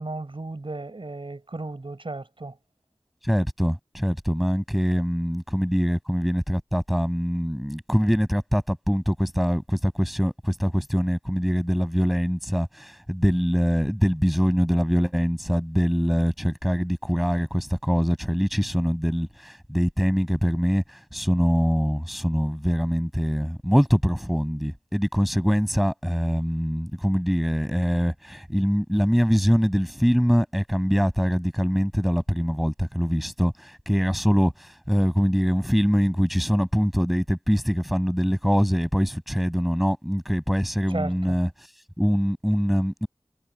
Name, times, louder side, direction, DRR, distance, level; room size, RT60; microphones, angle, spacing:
voice 1, 0.0-2.5 40.9-41.4, right 2 dB, 65° right, 5.9 m, -34 dB
voice 2, 3.2-41.5 42.0-43.1, equal, ahead, 6.6 m, -23 dB
wide cardioid pair, 45°, 10 cm